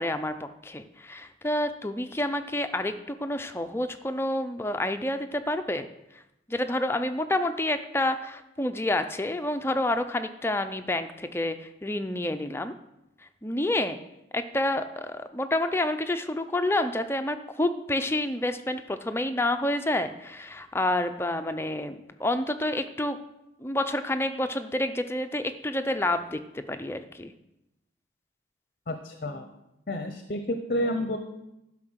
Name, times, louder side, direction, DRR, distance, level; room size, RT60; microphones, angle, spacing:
voice 1, 0.0-5.9 6.5-12.7 13.4-14.0 14.3-23.2 23.6-27.3, left 1 dB, 15° left, 8 dB, 0.5 m, -29 dB
voice 2, 28.9-29.5 29.9-31.2, left 1 dB, 50° left, 7 dB, 0.7 m, -30 dB
11.0 x 5.7 x 6.3 m, 0.89 s
head